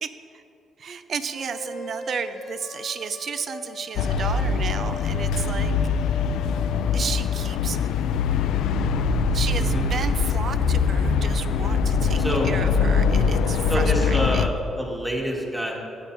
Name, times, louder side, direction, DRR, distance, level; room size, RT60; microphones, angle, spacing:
voice 1, 0.0-0.4 0.8-5.7 6.9-7.8 9.3-14.6, right 6 dB, 55° right, 11 dB, 0.5 m, -33 dB
sound 1, 1.3-7.5, left 2 dB, 60° left, 0.8 m, -39 dB
sound 2, 4.0-14.5, left 5 dB, 85° left, 0.3 m, -23 dB
voice 2, 9.5-9.9 12.2-12.5 13.7-15.8, equal, 10° right, -1 dB, 1.6 m, -27 dB
14.5 x 8.2 x 2.6 m, 2.8 s
cardioid pair, 90°, 0 cm